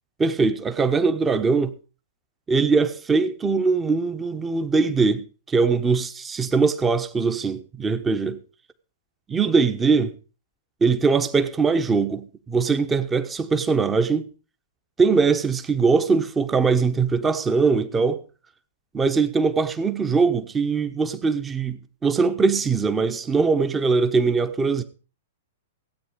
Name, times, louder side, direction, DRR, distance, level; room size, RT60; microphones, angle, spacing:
voice 1, 0.2-1.7 2.5-8.4 9.3-10.1 10.8-14.3 15.0-18.2 18.9-24.8, right 4 dB, 15° right, 1.0 m, -21 dB
16.0 x 8.9 x 5.1 m
figure-of-eight pair, 105°, 0 cm